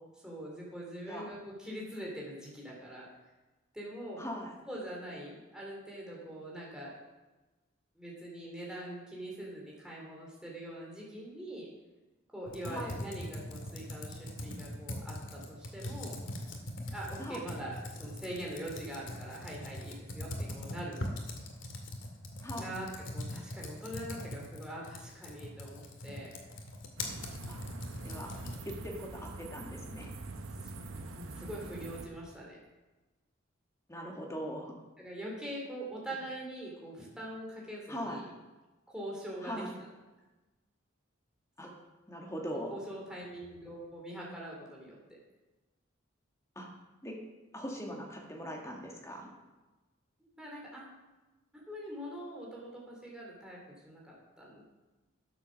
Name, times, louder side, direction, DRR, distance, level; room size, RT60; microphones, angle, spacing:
voice 1, 0.2-3.1 3.7-4.2 4.7-6.9 8.0-11.7 12.3-16.2 16.9-21.0 22.6-26.3 30.6-32.6 35.0-38.3 38.9-39.6 41.6-41.8 42.7-45.2 50.2-50.9 51.5-54.6, right 1 dB, 5° right, -4 dB, 3.5 m, -43 dB
voice 2, 4.2-4.5 12.7-12.9 17.2-17.4 22.4-22.7 27.5-27.6 28.0-28.3 28.7-30.1 33.9-34.7 37.9-38.2 39.4-39.7 41.6-41.7 42.1-42.8 46.6-46.7 47.0-47.2 47.5-49.3, equal, 15° left, -1 dB, 2.0 m, -40 dB
Computer keyboard, 12.5-28.9, left 1 dB, 70° left, 2.0 m, -42 dB
sound 1, 27.0-32.1, right 2 dB, 85° right, 1.0 m, -44 dB
12.0 x 8.0 x 6.6 m, 1.1 s
head